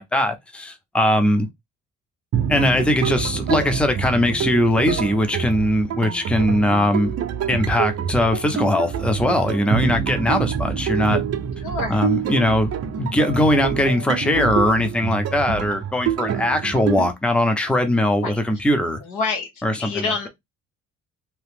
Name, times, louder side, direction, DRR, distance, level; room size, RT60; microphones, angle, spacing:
voice 1, 0.0-1.5 2.5-7.1 7.5-11.2 11.9-12.7 13.0-19.0 19.6-20.3, left 1 dB, 5° left, 0.6 m, -20 dB
sound 1, 2.3-17.1, right 8 dB, 55° right, 0.6 m, -26 dB
voice 2, 11.6-12.0 18.2-18.3 19.0-19.5 19.8-20.3, left 4 dB, 85° left, 1.4 m, -26 dB
2.8 x 2.4 x 3.4 m
cardioid pair, 90°, 30 cm